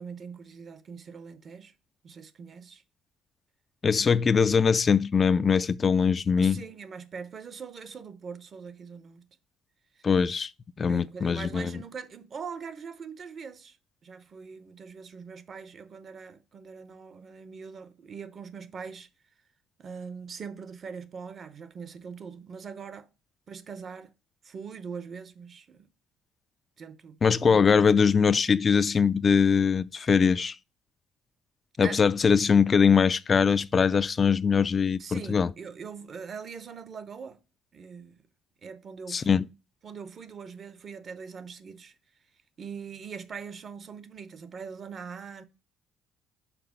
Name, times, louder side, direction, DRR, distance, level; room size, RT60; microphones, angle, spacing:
voice 1, 0.0-1.7 2.0-2.8 6.4-9.3 10.0-10.1 10.9-13.8 14.0-19.1 19.8-23.1 23.5-24.1 24.4-25.9 26.8-28.0 31.8-32.0 35.0-37.4 37.7-38.2 38.6-39.5 39.8-41.9 42.6-45.4, right 6 dB, 45° right, 0.8 m, -42 dB
voice 2, 3.8-6.6 10.0-10.5 10.8-11.7 27.2-30.6 31.8-35.5 39.1-39.5, left 6 dB, 40° left, 0.3 m, -22 dB
5.8 x 4.2 x 5.3 m
supercardioid pair, 80°, 0 cm